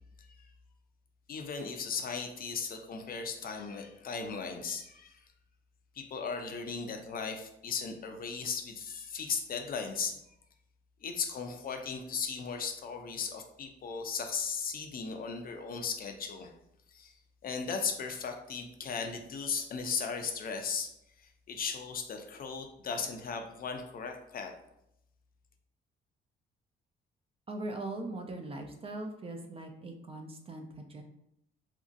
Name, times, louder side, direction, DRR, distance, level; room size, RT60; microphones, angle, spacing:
voice 1, 1.3-5.2 5.9-10.2 11.0-16.5 16.9-17.2 17.4-20.9 21.2-24.5, left 5 dB, 45° left, 5 dB, 0.4 m, -37 dB
voice 2, 27.5-31.0, right 2 dB, 30° right, 4 dB, 0.4 m, -40 dB
2.8 x 2.6 x 2.4 m, 0.79 s
cardioid pair, 90°, 20 cm